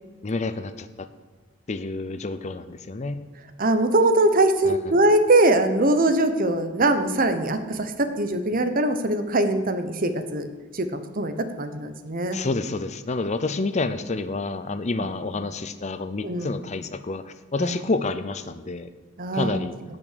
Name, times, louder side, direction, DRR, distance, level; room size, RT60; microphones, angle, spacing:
voice 1, 0.2-1.1 1.7-3.2 4.6-4.9 12.3-18.9 19.3-19.8, left 3 dB, 35° left, 11 dB, 0.6 m, -29 dB
voice 2, 3.6-10.5 10.7-12.4 16.2-16.5 17.6-17.8 19.2-19.6, right 2 dB, 45° right, 9 dB, 1.0 m, -22 dB
17.0 x 6.1 x 6.8 m, 1.4 s
head